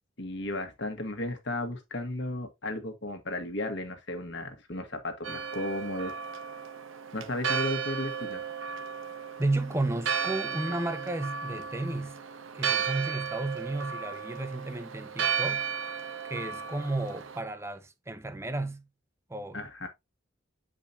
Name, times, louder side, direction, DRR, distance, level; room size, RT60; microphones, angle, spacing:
voice 1, 0.2-6.1 7.1-8.4 19.5-19.9, left 1 dB, 60° left, 1.5 m, -34 dB
Church bell, 5.2-17.4, right 6 dB, 75° right, 0.8 m, -34 dB
voice 2, 9.4-12.2 12.5-15.7 16.2-18.8 19.3-19.7, right 2 dB, 15° right, 0.7 m, -33 dB
8.4 x 5.0 x 2.7 m
head